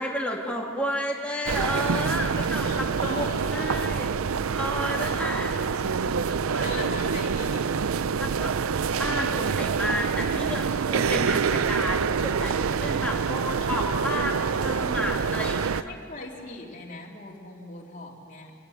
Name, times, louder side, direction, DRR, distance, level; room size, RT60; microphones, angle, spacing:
voice 1, 0.0-4.1 4.5-5.6 5.9-6.9 8.2-15.8, left 1 dB, 5° left, -1 dB, 2.5 m, -32 dB
sound 1, 1.5-15.8, right 6 dB, 90° right, 0.5 m, -26 dB
voice 2, 2.6-4.1 5.0-6.1 6.6-7.7 15.6-18.5, left 2 dB, 35° left, -2 dB, 3.1 m, -40 dB
24.5 x 17.5 x 8.6 m, 2.5 s
head